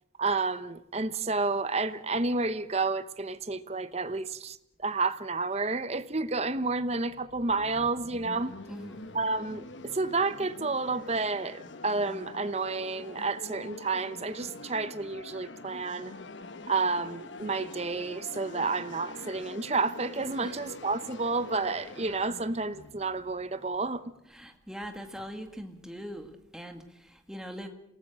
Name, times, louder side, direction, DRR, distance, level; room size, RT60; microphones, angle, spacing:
voice 1, 0.2-8.5 9.1-16.1 16.7-24.0, right 3 dB, 35° right, 0.9 m, -30 dB
sound 1, 6.3-24.1, left 2 dB, 75° left, 1.1 m, -45 dB
voice 2, 8.7-9.1 20.4-20.6 24.2-27.7, equal, 5° right, 2.0 m, -42 dB
27.5 x 18.5 x 6.4 m
head